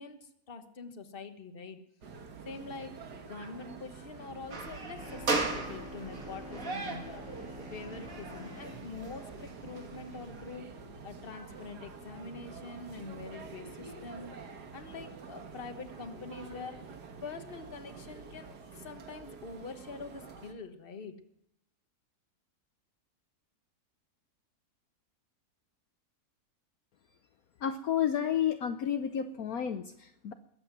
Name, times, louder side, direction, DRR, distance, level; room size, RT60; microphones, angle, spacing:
voice 1, 0.0-1.8 2.4-10.7 11.0-14.3 14.7-16.9 17.2-21.2, left 4 dB, 35° left, 7 dB, 1.4 m, -45 dB
sound 1, 2.0-20.5, right 4 dB, 80° right, 2.0 m, -48 dB
sound 2, 4.5-10.6, right 3 dB, 55° right, 2.8 m, -38 dB
sound 3, 5.0-8.9, left 1 dB, 5° right, 3.6 m, -47 dB
voice 2, 27.6-30.3, left 9 dB, 65° left, 8 dB, 1.2 m, -31 dB
21.0 x 8.6 x 6.1 m, 0.79 s
omnidirectional pair, 1.7 m